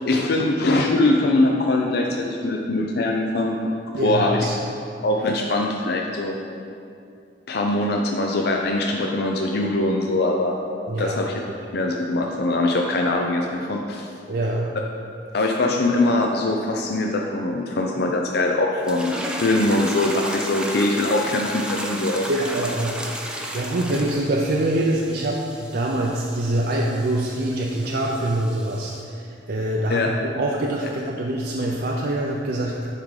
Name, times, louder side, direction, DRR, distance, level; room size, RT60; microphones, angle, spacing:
voice 1, 0.0-3.6 4.0-4.5 5.0-6.4 7.5-10.6 11.0-11.4 11.7-14.1 15.3-22.3 23.9-24.0 29.9-30.1, left 2 dB, 65° left, 1 dB, 0.5 m, -22 dB
voice 2, 3.9-4.5 10.9-11.2 14.3-14.7 22.3-30.1 30.3-32.9, right 1 dB, 60° right, -1 dB, 0.5 m, -25 dB
sound 1, 18.8-29.0, right 1 dB, 5° right, 0.6 m, -34 dB
10.5 x 3.6 x 4.9 m, 2.5 s
head